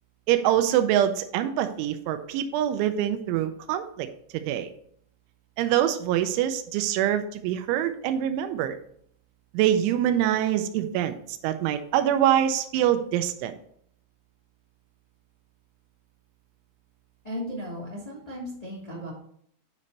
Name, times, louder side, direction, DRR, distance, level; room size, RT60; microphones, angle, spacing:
voice 1, 0.3-4.1 4.3-4.7 5.6-8.8 9.5-13.5, right 11 dB, 90° right, 9 dB, 3.0 m, -25 dB
voice 2, 17.2-19.1, equal, 25° left, -6 dB, 0.8 m, -36 dB
9.4 x 5.2 x 4.1 m, 0.65 s
omnidirectional pair, 5.4 m